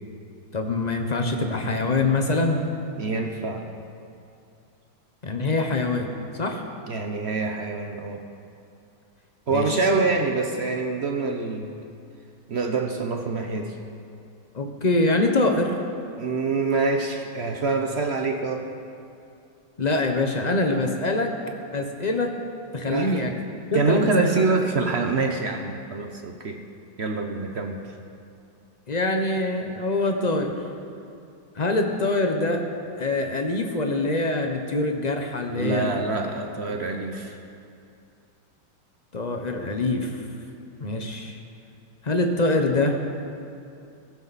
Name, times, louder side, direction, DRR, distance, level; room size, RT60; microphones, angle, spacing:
voice 1, 0.5-2.6 5.2-6.6 9.5-9.8 14.5-15.8 19.8-21.3 21.7-22.3 22.7-23.3 23.7-24.3 28.9-30.5 31.5-32.6 33.0-36.0 39.1-40.2 40.8-41.4 42.0-43.0, left 2 dB, 40° left, 3 dB, 0.6 m, -24 dB
voice 2, 3.0-3.7 6.9-8.2 9.5-11.7 12.5-13.8 16.2-18.7 22.9-23.3 23.7-26.6 27.0-27.8 35.5-37.4, right 3 dB, 55° right, 3 dB, 0.7 m, -25 dB
16.5 x 14.5 x 4.1 m, 2.5 s
omnidirectional pair, 2.1 m